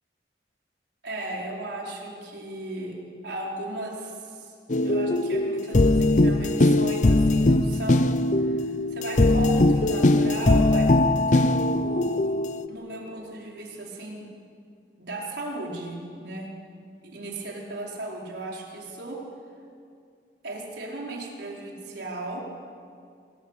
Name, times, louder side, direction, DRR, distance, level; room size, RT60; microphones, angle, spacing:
voice 1, 1.0-3.0 3.2-4.5 4.8-8.1 8.4-12.4 12.7-14.3 15.0-16.5 17.0-19.2 20.4-22.4, right 2 dB, 70° right, -2 dB, 4.8 m, -36 dB
sound 1, 4.7-12.7, left 2 dB, 45° left, 0.7 m, -21 dB
27.0 x 19.0 x 8.4 m, 2.3 s
head